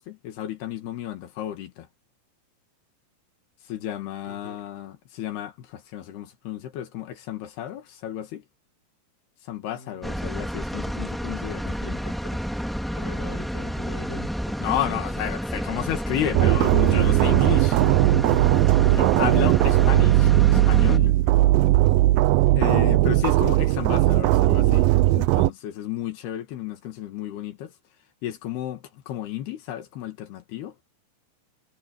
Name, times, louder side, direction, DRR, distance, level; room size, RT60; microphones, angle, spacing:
voice 1, 0.0-1.9 3.7-8.4 9.4-12.0 14.6-17.8 18.9-21.2 22.6-27.7 28.2-30.7, left 11 dB, 80° left, 3.8 m, -32 dB
voice 2, 4.2-4.7 9.7-10.5 11.6-15.2 15.8-16.0 16.5-17.6 18.2-19.2 20.9-22.0 22.2-22.5, left 2 dB, 15° left, 5.8 m, -45 dB
sound 1, 10.0-21.0, equal, ahead, 0.8 m, -30 dB
sound 2, 16.3-25.5, right 17 dB, 80° right, 2.1 m, -18 dB
omnidirectional pair, 4.5 m